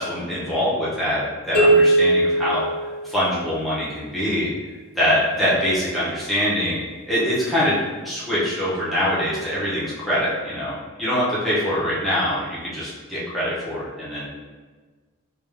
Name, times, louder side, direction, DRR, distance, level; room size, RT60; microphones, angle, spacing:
voice 1, 0.0-2.6 3.0-4.5 5.0-7.8 8.0-10.7 11.0-14.3, equal, ahead, -10 dB, 0.7 m, -24 dB
sound 1, 1.5-3.5, right 2 dB, 60° left, 1.4 m, -19 dB
3.4 x 2.3 x 3.4 m, 1.4 s
head